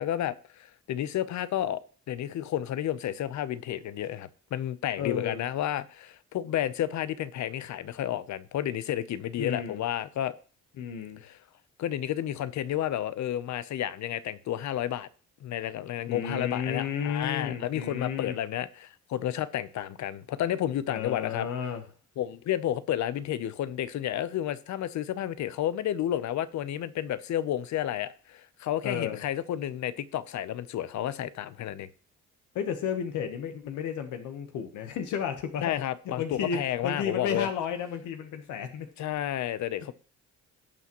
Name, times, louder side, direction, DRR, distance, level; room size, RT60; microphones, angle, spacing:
voice 1, 0.0-1.8 2.1-10.3 11.2-11.4 11.8-15.1 15.4-21.5 22.2-31.9 35.6-37.5 39.0-39.9, left 11 dB, 70° left, 0.8 m, -31 dB
voice 2, 5.0-5.5 9.4-9.8 10.8-11.2 16.1-18.4 20.9-21.8 28.8-29.2 32.5-35.7 36.2-38.9, left 7 dB, 85° left, 1.1 m, -33 dB
17.0 x 6.0 x 3.0 m
cardioid pair, 90°, 30 cm